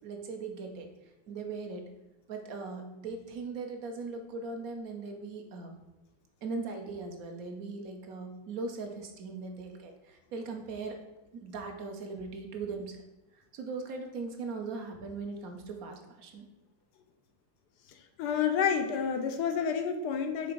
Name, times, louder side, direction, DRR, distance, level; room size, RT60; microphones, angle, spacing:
voice 1, 0.0-0.9 1.3-1.8 2.3-5.7 6.4-11.0 11.3-13.0 13.3-16.5, right 4 dB, 60° right, 4 dB, 1.0 m, -39 dB
voice 2, 17.9-20.5, left 7 dB, 70° left, 6 dB, 1.0 m, -30 dB
5.9 x 3.8 x 5.1 m, 0.98 s
omnidirectional pair, 2.2 m